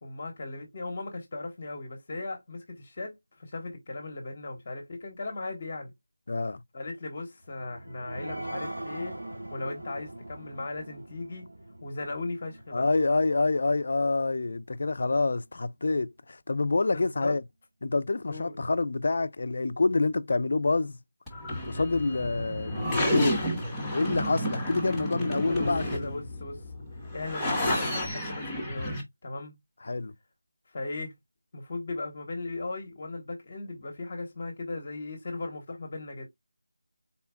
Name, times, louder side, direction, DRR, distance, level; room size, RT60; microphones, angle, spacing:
voice 1, 0.0-5.9 6.7-9.2 9.5-11.5 11.8-12.9 16.9-17.4 18.3-18.6 25.2-26.6 27.1-29.5 30.7-31.1 31.5-36.3, left 2 dB, 35° left, 0.9 m, -37 dB
voice 2, 6.3-6.6 12.7-17.4 17.8-21.0 21.6-26.2 29.8-30.1, left 3 dB, 50° left, 0.3 m, -27 dB
sound 1, 7.4-14.5 15.0-15.1 15.4-15.5, right 1 dB, 70° right, 2.9 m, -42 dB
sound 2, 21.3-29.0, left 1 dB, ahead, 0.7 m, -31 dB
4.1 x 2.2 x 3.4 m
figure-of-eight pair, 175°, 0 cm